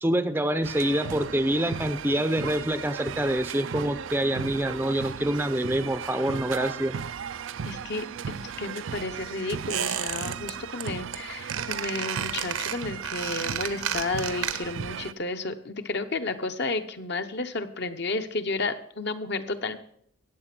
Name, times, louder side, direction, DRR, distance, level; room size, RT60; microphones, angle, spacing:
voice 1, 0.0-7.0, right 1 dB, 10° right, 10 dB, 0.5 m, -26 dB
sound 1, 0.6-15.1, right 7 dB, 65° right, 0.4 m, -37 dB
voice 2, 7.7-19.8, left 3 dB, 50° left, 8 dB, 0.9 m, -32 dB
Squeak, 9.7-10.5 10.8-11.2 11.5-14.9 15.2-15.3, right 8 dB, 90° right, 1.2 m, -31 dB
14.5 x 8.7 x 6.0 m, 0.67 s
head